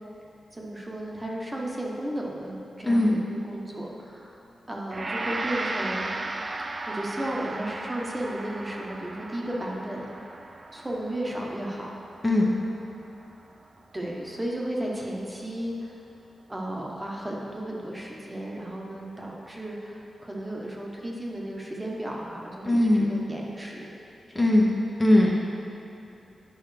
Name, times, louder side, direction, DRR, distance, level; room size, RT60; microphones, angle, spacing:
voice 1, 0.5-6.1 6.9-10.4 10.7-11.9 13.9-15.9 16.5-23.9 24.3-24.5, right 1 dB, 20° right, -3 dB, 1.1 m, -34 dB
voice 2, 2.8-3.2 12.2-12.5 22.6-23.1 24.3-25.4, left 1 dB, 20° left, -3 dB, 0.8 m, -20 dB
Gong, 4.9-14.1, right 2 dB, 35° right, 0.4 m, -36 dB
10.5 x 5.4 x 3.3 m, 2.9 s
cardioid pair, 90°, 0 cm